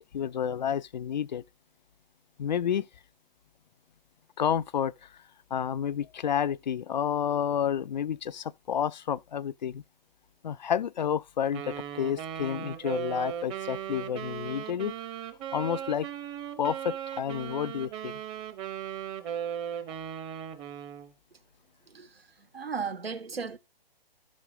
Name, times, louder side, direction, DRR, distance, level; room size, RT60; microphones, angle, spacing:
voice 1, 0.0-1.4 2.4-2.9 4.4-4.9 5.5-9.8 10.4-14.9 15.5-16.1 16.6-18.2, left 8 dB, 50° left, 0.5 m, -30 dB
Wind instrument woodwind instrument, 11.5-21.1, right 9 dB, 15° right, 0.9 m, -37 dB
voice 2, 21.9-23.6, right 5 dB, 75° right, 1.6 m, -36 dB
12.5 x 6.3 x 4.9 m
figure-of-eight pair, 130°, 30 cm